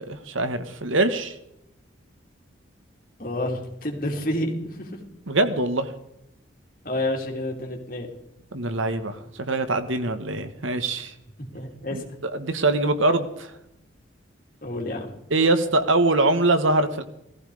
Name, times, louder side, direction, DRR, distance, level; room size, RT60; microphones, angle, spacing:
voice 1, 0.0-1.3 5.3-5.9 8.5-11.1 11.9-13.5 15.3-17.0, right 2 dB, 90° right, 10 dB, 1.7 m, -23 dB
voice 2, 3.2-5.0 6.8-8.1 11.5-12.0 14.6-15.1, left 1 dB, 45° left, 1 dB, 3.4 m, -29 dB
17.5 x 15.0 x 5.0 m, 0.83 s
head